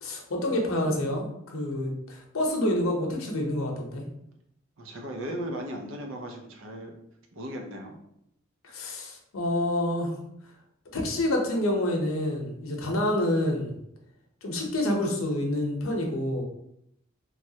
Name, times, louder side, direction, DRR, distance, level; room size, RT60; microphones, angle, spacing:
voice 1, 0.0-4.0 8.6-10.1 10.9-13.7 14.4-16.4, left 1 dB, 85° left, 1 dB, 0.7 m, -28 dB
voice 2, 4.8-6.9 7.3-8.0, right 1 dB, 70° right, 2 dB, 0.6 m, -36 dB
3.1 x 2.3 x 2.7 m, 0.76 s
head